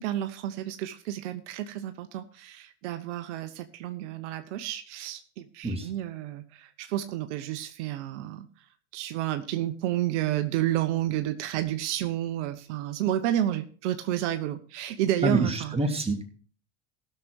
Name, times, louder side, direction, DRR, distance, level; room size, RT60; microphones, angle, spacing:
voice 1, 0.0-8.5 8.9-15.9, right 13 dB, 80° right, 8 dB, 1.0 m, -30 dB
voice 2, 15.2-16.4, right 2 dB, 15° right, 2 dB, 2.7 m, -27 dB
16.0 x 6.8 x 4.6 m, 0.41 s
hypercardioid pair, 80°, 35 cm